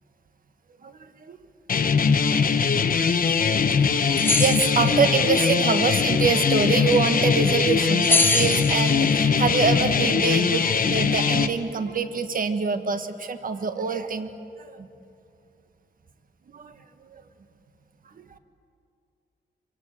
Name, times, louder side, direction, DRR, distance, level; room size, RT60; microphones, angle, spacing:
voice 1, 0.8-1.4 2.4-2.7 3.4-3.5 4.3-14.3 14.6-14.9 16.5-16.8 17.1-17.2 18.2-18.3, right 5 dB, 50° right, 9 dB, 1.4 m, -25 dB
sound 1, 1.7-11.5, left 6 dB, 50° left, 1.2 m, -21 dB
sound 2, 4.2-5.0 8.0-9.2, left 2 dB, 10° left, 1.2 m, -24 dB
26.0 x 23.0 x 8.7 m, 2.6 s
wide cardioid pair, 150°, 19 cm